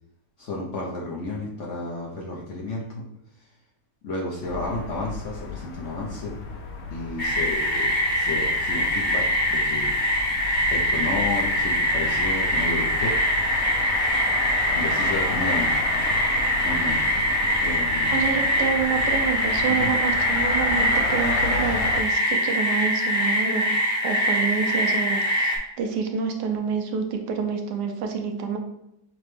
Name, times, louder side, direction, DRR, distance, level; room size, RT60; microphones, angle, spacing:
voice 1, 0.4-3.0 4.0-6.3 6.9-9.2 9.5-9.9 10.7-13.1 14.7-15.7 16.6-17.0 17.6-18.4 19.7-19.9, left 2 dB, 60° left, -3 dB, 0.8 m, -32 dB
sound 1, 4.4-22.0, left 4 dB, 90° left, 1.2 m, -33 dB
sound 2, 7.2-25.6, equal, 35° left, 0.9 m, -23 dB
voice 2, 18.1-23.8 24.0-28.6, right 6 dB, 75° right, 4 dB, 1.1 m, -28 dB
5.9 x 2.1 x 3.2 m, 0.82 s
omnidirectional pair, 1.8 m